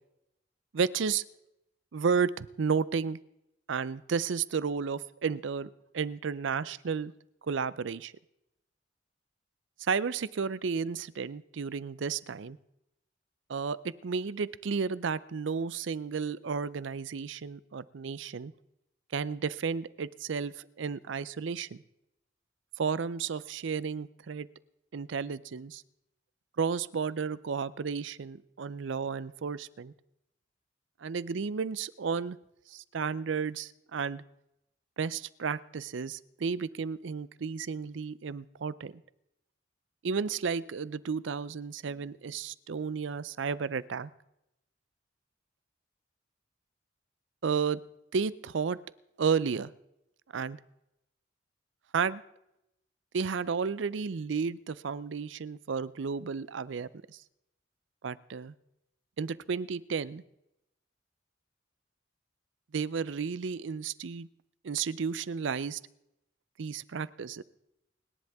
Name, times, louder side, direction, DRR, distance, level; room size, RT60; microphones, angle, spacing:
voice 1, 0.7-1.2 1.9-3.2 3.7-7.1 7.5-8.1 9.8-12.6 13.5-18.5 19.1-21.8 22.8-24.5 24.9-25.8 26.6-29.9 31.0-32.4 32.7-34.2 35.0-38.9 40.0-44.1 47.4-47.8 48.1-48.8 49.2-49.7 50.3-50.6 51.9-52.2 53.1-57.2 58.0-58.5 59.2-60.2 62.7-64.3 64.6-65.8 66.6-67.4, right 5 dB, 75° right, 19 dB, 0.5 m, -32 dB
29.0 x 10.5 x 3.5 m, 0.85 s
head